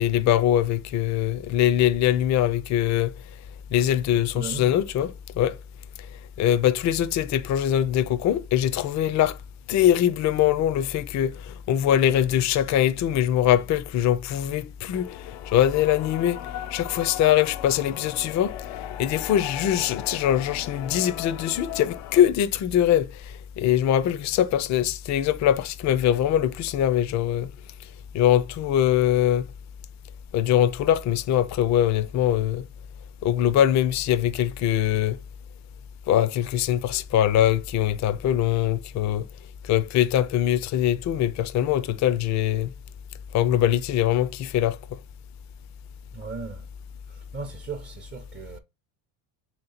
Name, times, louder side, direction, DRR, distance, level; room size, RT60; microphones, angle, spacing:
voice 1, 0.0-3.1 3.7-5.6 6.4-9.4 9.7-16.4 16.7-27.5 28.1-29.5 30.3-32.6 33.2-35.2 36.1-39.3 39.6-42.7 43.3-44.8, left 11 dB, 40° left, 0.4 m, -22 dB
voice 2, 4.1-4.7 46.1-46.7 47.1-48.6, right 4 dB, 25° right, 0.5 m, -37 dB
sound 1, 14.9-22.2, left 13 dB, 85° left, 0.6 m, -37 dB
3.1 x 2.9 x 4.1 m
cardioid pair, 110°, 48 cm